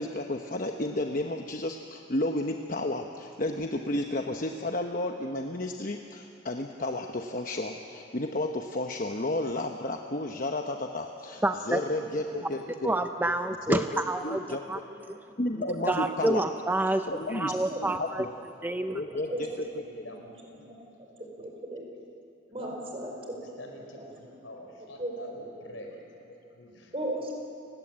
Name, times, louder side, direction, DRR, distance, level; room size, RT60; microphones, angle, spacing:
voice 1, 0.0-12.9 13.7-14.6 15.4-16.4 17.1-17.5 18.0-18.1 18.9-19.5, left 2 dB, 45° left, 3 dB, 1.0 m, -32 dB
voice 2, 11.4-11.8 12.8-14.8 15.9-18.2 18.6-19.0, right 1 dB, 10° right, 7 dB, 0.5 m, -28 dB
voice 3, 12.1-12.4 14.4-14.5 14.9-15.0 15.6-16.2 17.7-17.8 19.1-19.5 20.0-20.1 20.5-20.8 21.3-21.9 22.5-23.6 23.9-24.0 24.8-25.2 26.9-27.3, right 1 dB, 30° right, 1 dB, 4.7 m, -37 dB
voice 4, 17.0-18.4 18.7-18.8 19.3-19.4 19.8-21.0 22.5-26.0 26.2-26.9, left 1 dB, 85° left, 2 dB, 5.1 m, -48 dB
30.0 x 17.0 x 8.9 m, 2.7 s
head